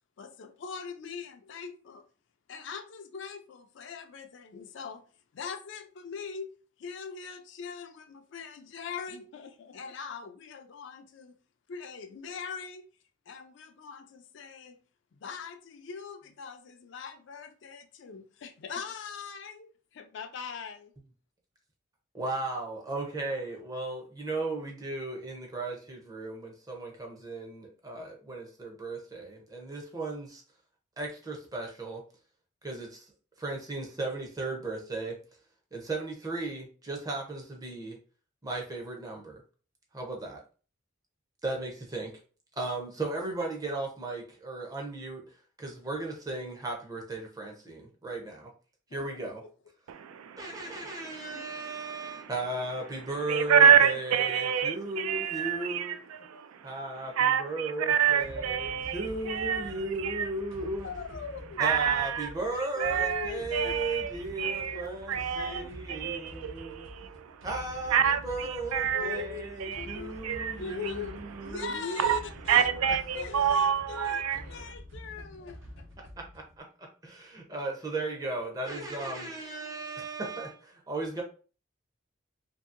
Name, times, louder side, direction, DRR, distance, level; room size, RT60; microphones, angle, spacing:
voice 1, 0.2-2.0 2.5-5.0 5.3-6.5 6.8-11.3 11.7-12.9 13.3-14.8 15.2-20.9 48.9-49.3 51.3-51.4 55.0-55.1 55.8-56.0 59.5-59.6 60.8-61.6 62.5-63.7 64.7-65.7 68.0-68.1 68.4-68.5 68.9-69.4 69.7-70.2 70.6-72.7 73.1-75.8, left 6 dB, 60° left, 0.3 m, -41 dB
voice 2, 22.1-30.4 31.0-32.0 32.6-33.1 33.4-35.2 35.7-38.0 38.4-39.4 39.9-40.4 41.4-42.1 42.6-48.5 48.9-49.4 50.4-56.0 56.6-60.9 61.6-66.9 67.4-71.8 72.9-73.0 76.0-81.2, right 2 dB, 15° right, 0.6 m, -36 dB
voice 3, 49.9-52.3 53.3-56.7 57.2-59.7 60.0-60.3 61.6-62.3 62.8-67.5 67.9-69.2 69.6-70.6 71.6-71.7 72.0-72.2 72.5-74.4, right 8 dB, 90° right, 0.3 m, -28 dB
sound 1, 58.2-76.6, equal, 65° right, 0.7 m, -47 dB
2.8 x 2.7 x 2.4 m
head